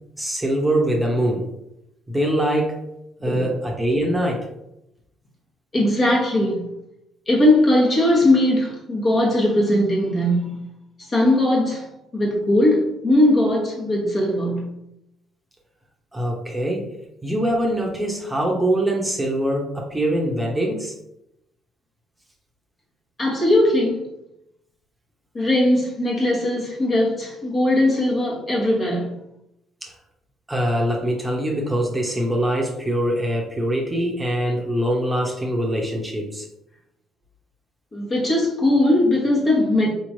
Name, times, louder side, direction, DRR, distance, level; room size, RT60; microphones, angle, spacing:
voice 1, 0.2-1.5 2.1-2.8 3.2-4.5 16.1-16.9 17.2-20.9 29.8-29.9 30.5-36.5, right 1 dB, 15° right, 0.9 m, -23 dB
voice 2, 5.7-6.7 7.3-10.7 11.0-14.8 23.2-24.0 25.3-29.2 37.9-39.9, left 1 dB, 40° left, 1.3 m, -19 dB
4.0 x 3.0 x 2.7 m
hypercardioid pair, 50°, 0 cm